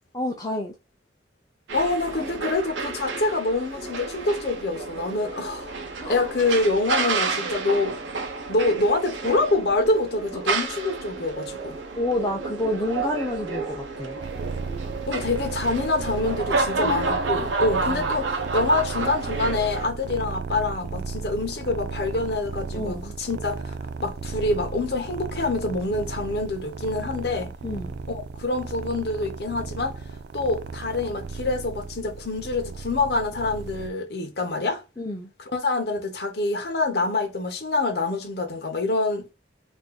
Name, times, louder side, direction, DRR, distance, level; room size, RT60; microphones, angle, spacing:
voice 1, 0.1-0.7 6.0-6.3 10.4-10.5 12.0-14.2 17.9-18.1 22.7-23.1 27.6-27.9 35.0-35.3, left 1 dB, 20° left, 0.5 m, -29 dB
voice 2, 1.7-5.8 6.1-8.0 8.5-11.8 15.1-23.7 24.0-27.5 28.1-30.0 30.3-34.8 35.5-39.3, left 2 dB, 60° left, 1.0 m, -26 dB
sound 1, 1.7-19.9, right 4 dB, 85° right, 0.7 m, -30 dB
sound 2, 14.2-33.9, right 4 dB, 65° right, 0.3 m, -35 dB
3.6 x 2.6 x 2.3 m
head